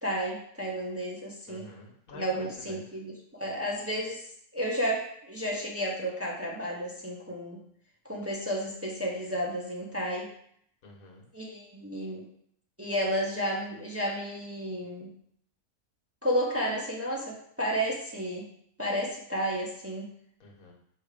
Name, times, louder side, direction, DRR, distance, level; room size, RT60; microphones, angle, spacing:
voice 1, 0.0-1.7 2.1-4.2 4.5-7.6 8.0-10.3 11.3-12.3 12.8-15.1 16.2-18.5 18.8-20.1, equal, 10° right, -3 dB, 0.8 m, -32 dB
voice 2, 1.5-2.8 10.8-11.2 20.4-20.7, left 2 dB, 85° left, 0 dB, 1.6 m, -48 dB
6.4 x 3.3 x 5.0 m, 0.67 s
omnidirectional pair, 1.4 m